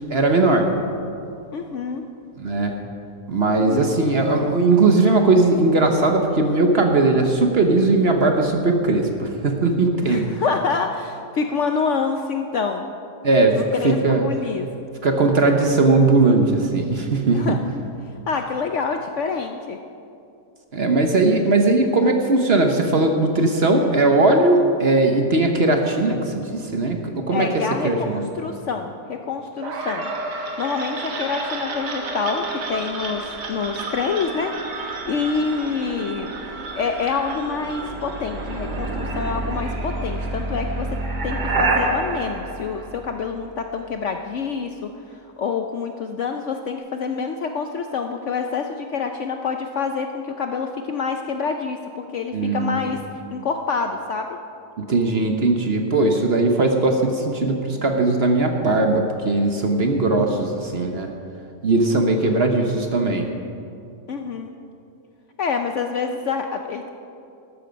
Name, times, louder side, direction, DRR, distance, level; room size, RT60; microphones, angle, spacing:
voice 1, 0.1-0.7 2.4-2.7 3.3-10.2 13.2-14.3 15.0-17.6 20.7-28.2 52.3-52.9 54.8-61.1 61.6-63.3, right 2 dB, 45° right, 4 dB, 1.0 m, -19 dB
voice 2, 1.5-2.0 3.5-3.9 10.0-12.9 13.5-14.7 17.3-17.6 18.3-19.8 27.3-36.3 36.7-53.0 53.3-54.4 61.9-62.4 64.1-64.5 65.4-66.9, left 5 dB, 65° left, 5 dB, 0.8 m, -27 dB
sound 1, 29.6-43.5, right 3 dB, 80° right, 2.0 m, -29 dB
13.0 x 12.5 x 5.2 m, 2.6 s
omnidirectional pair, 1.8 m